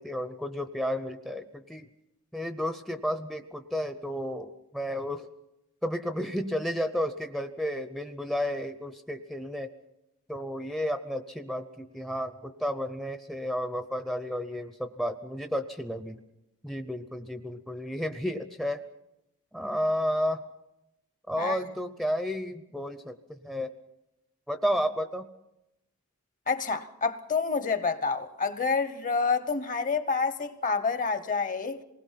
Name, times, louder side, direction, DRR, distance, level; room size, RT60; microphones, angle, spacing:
voice 1, 0.0-1.9 2.3-5.3 5.8-9.7 10.3-16.2 16.6-18.8 19.5-20.4 21.3-23.7 24.5-25.3, equal, ahead, 0.7 m, -32 dB
voice 2, 26.5-31.8, left 4 dB, 35° left, 1.0 m, -28 dB
27.0 x 20.0 x 5.8 m
head